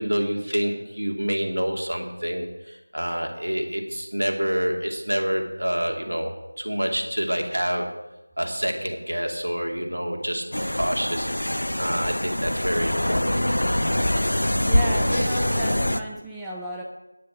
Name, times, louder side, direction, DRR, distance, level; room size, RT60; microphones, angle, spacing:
voice 1, 0.0-8.0 8.4-13.4, equal, 70° right, 2 dB, 2.3 m, -27 dB
sound 1, 10.5-16.0, left 1 dB, 65° left, 0.8 m, -24 dB
voice 2, 14.7-16.8, right 1 dB, ahead, -5 dB, 0.5 m, -33 dB
9.9 x 6.8 x 8.0 m, 1.0 s
figure-of-eight pair, 170°, 0 cm